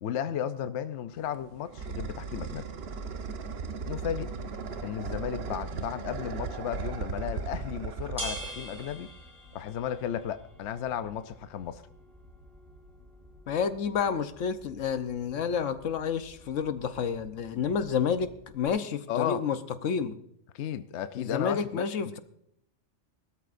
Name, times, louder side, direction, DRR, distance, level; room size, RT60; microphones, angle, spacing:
voice 1, 0.0-2.6 3.9-4.3 4.8-9.1 9.5-11.8 19.1-19.4 20.5-21.8, left 9 dB, 70° left, 10 dB, 0.9 m, -34 dB
sound 1, 1.2-9.1, right 5 dB, 60° right, 1.1 m, -37 dB
Wind instrument woodwind instrument, 3.0-8.5, left 3 dB, 45° left, 2.3 m, -53 dB
sound 2, 7.2-18.7, right 1 dB, 5° right, 6.9 m, -47 dB
voice 2, 13.5-20.2 21.2-22.2, left 6 dB, 90° left, 10 dB, 1.2 m, -30 dB
20.5 x 13.0 x 2.5 m, 0.73 s
omnidirectional pair, 1.2 m